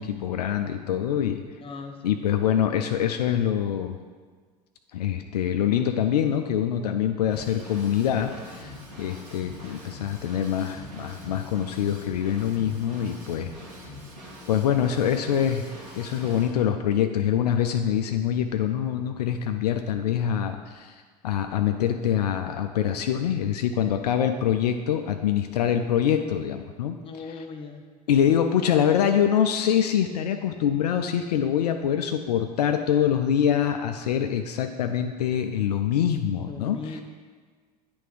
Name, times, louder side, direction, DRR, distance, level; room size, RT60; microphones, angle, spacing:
voice 1, 0.0-1.4 2.0-4.0 4.9-8.7 9.0-13.5 14.5-15.7 16.0-21.0 21.2-27.4 28.1-37.0, left 9 dB, 70° left, 7 dB, 0.4 m, -25 dB
voice 2, 1.6-2.1 27.0-27.8 36.5-37.0, left 4 dB, 25° left, 4 dB, 0.8 m, -38 dB
Drum kit / Drum, 7.3-16.5, left 1 dB, 80° right, 1.7 m, -43 dB
9.1 x 3.4 x 4.8 m, 1.5 s
figure-of-eight pair, 75°, 21 cm